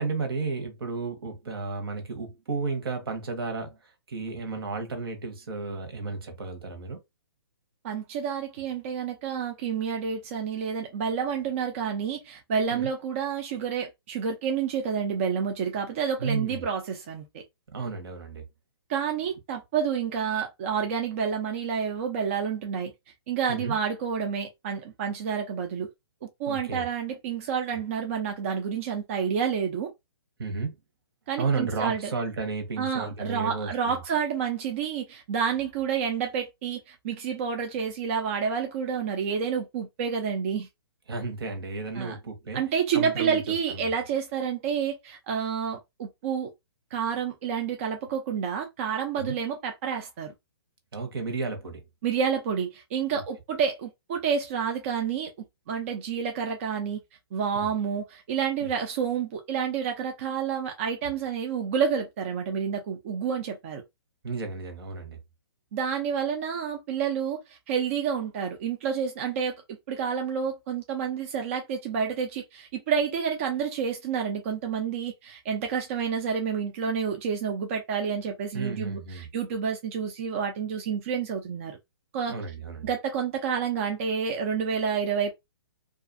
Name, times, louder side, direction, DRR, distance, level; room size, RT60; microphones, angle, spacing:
voice 1, 0.0-7.0 12.7-12.9 16.2-16.7 17.7-18.4 23.5-23.8 26.5-26.9 30.4-30.7 31.4-34.0 41.1-42.6 42.9-43.4 43.7-43.9 49.2-49.4 50.9-51.8 57.5-57.7 58.6-58.7 64.2-65.2 78.5-79.3 82.3-82.9, right 4 dB, 60° right, 1.0 m, -33 dB
voice 2, 7.8-17.3 18.9-22.9 23.3-25.9 26.4-29.9 31.3-32.1 32.8-40.7 42.0-42.1 42.5-46.5 46.9-50.3 52.0-55.3 55.7-57.0 57.3-63.8 65.7-81.8 82.1-82.4 82.8-85.3, right 7 dB, 30° right, 0.4 m, -29 dB
2.4 x 2.4 x 2.5 m
hypercardioid pair, 155°, 14 cm